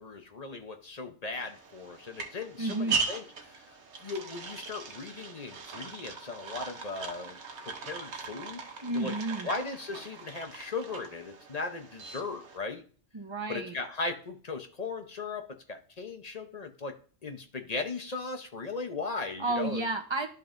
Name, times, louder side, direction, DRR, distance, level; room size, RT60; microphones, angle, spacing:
voice 1, 0.0-7.4 7.7-8.6 8.9-9.1 9.4-12.8 13.5-16.9 17.2-19.9, left 3 dB, 40° left, 6 dB, 0.9 m, -37 dB
sound 1, 1.3-12.6, right 5 dB, 90° right, 1.3 m, -39 dB
voice 2, 2.6-3.0 8.8-9.5 13.1-13.8 19.4-20.3, right 2 dB, 30° right, 6 dB, 0.9 m, -31 dB
12.0 x 5.3 x 2.6 m, 0.41 s
omnidirectional pair, 1.1 m